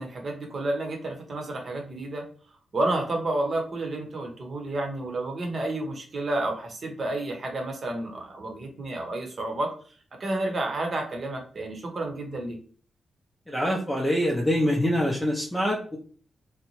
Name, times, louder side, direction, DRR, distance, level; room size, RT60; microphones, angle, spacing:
voice 1, 0.0-2.2 2.7-9.7 10.2-12.6, right 2 dB, 55° right, 2 dB, 0.9 m, -30 dB
voice 2, 13.5-16.0, equal, 5° left, -1 dB, 0.6 m, -25 dB
2.7 x 2.1 x 2.9 m, 0.43 s
supercardioid pair, 50°, 0 cm